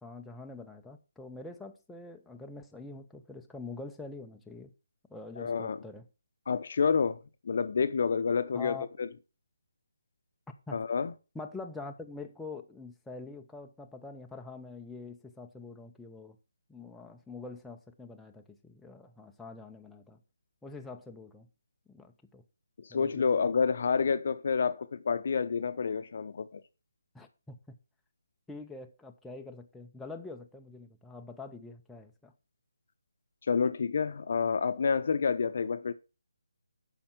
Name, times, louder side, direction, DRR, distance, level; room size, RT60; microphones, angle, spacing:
voice 1, 0.0-4.7 5.1-6.1 8.5-8.9 10.7-10.8 11.3-16.4 16.7-20.2 20.6-21.5 21.9-22.4 22.9-23.3 27.1-27.7 28.5-32.3, left 3 dB, 5° left, 0.7 m, -45 dB
voice 2, 5.4-5.8 6.5-7.2 7.4-9.1 10.7-11.1 22.9-26.6 33.5-35.9, left 5 dB, 50° left, 0.7 m, -28 dB
8.6 x 5.9 x 5.8 m
figure-of-eight pair, 150°, 0 cm